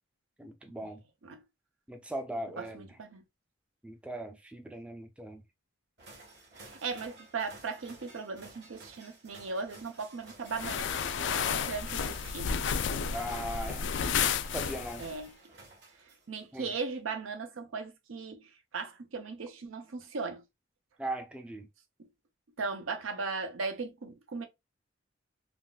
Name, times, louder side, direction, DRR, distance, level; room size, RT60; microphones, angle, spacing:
voice 1, 0.4-1.0 1.9-3.0 3.8-5.4 13.1-13.9 14.5-15.1 16.5-16.7 21.0-21.7, right 1 dB, 5° right, 0.3 m, -39 dB
voice 2, 2.6-3.2 6.6-10.9 11.2-12.6 15.0-15.3 16.3-18.4 18.7-20.4 22.6-24.5, right 4 dB, 85° right, 0.6 m, -37 dB
sound 1, 6.0-16.4, right 2 dB, 55° right, 1.4 m, -53 dB
sound 2, 10.5-15.2, left 7 dB, 65° left, 0.3 m, -32 dB
3.5 x 2.4 x 2.3 m
head